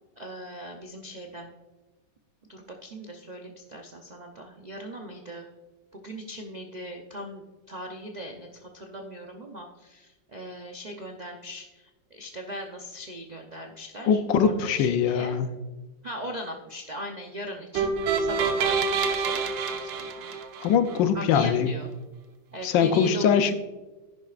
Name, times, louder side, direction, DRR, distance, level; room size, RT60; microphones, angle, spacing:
voice 1, 0.2-1.5 2.5-5.5 5.9-15.4 16.0-20.4 21.1-21.9 22.5-23.5, equal, 75° right, 2 dB, 0.4 m, -40 dB
voice 2, 14.1-15.5 20.6-21.7 22.6-23.5, left 7 dB, 80° left, 10 dB, 1.4 m, -22 dB
sound 1, 17.7-21.0, right 5 dB, 90° right, 1.6 m, -27 dB
10.5 x 10.5 x 2.4 m, 1.2 s
omnidirectional pair, 2.0 m